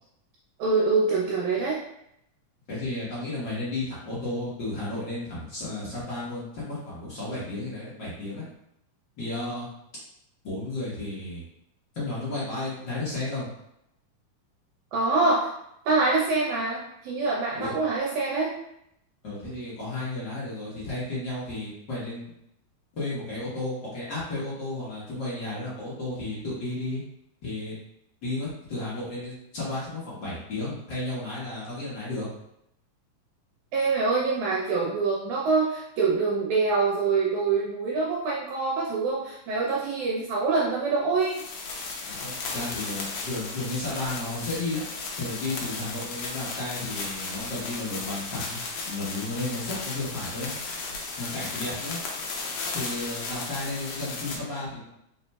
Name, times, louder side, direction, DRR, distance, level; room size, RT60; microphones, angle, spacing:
voice 1, 0.6-1.8 14.9-15.5 15.9-18.6 33.7-41.4, right 4 dB, 75° right, -4 dB, 1.9 m, -25 dB
voice 2, 2.7-8.5 9.2-9.7 10.4-11.4 11.9-13.5 17.5-17.7 19.2-22.3 22.9-27.0 27.4-27.8 28.2-32.3 42.1-44.8 45.2-48.6 48.8-50.5 51.2-52.0 52.7-54.9, left 2 dB, 55° left, -9 dB, 1.2 m, -33 dB
sound 1, 41.2-54.4, left 3 dB, 75° left, 1.5 m, -35 dB
4.3 x 4.2 x 2.2 m, 0.78 s
omnidirectional pair, 3.8 m